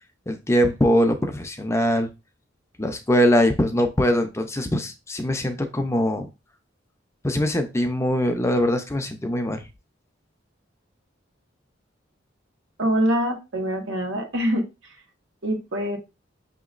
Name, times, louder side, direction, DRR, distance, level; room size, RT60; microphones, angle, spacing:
voice 1, 0.3-2.1 2.8-6.3 7.2-9.6, equal, 15° left, 6 dB, 0.5 m, -22 dB
voice 2, 12.8-14.6 15.4-16.0, equal, 90° right, 3 dB, 1.2 m, -24 dB
6.2 x 2.9 x 2.4 m, 0.27 s
head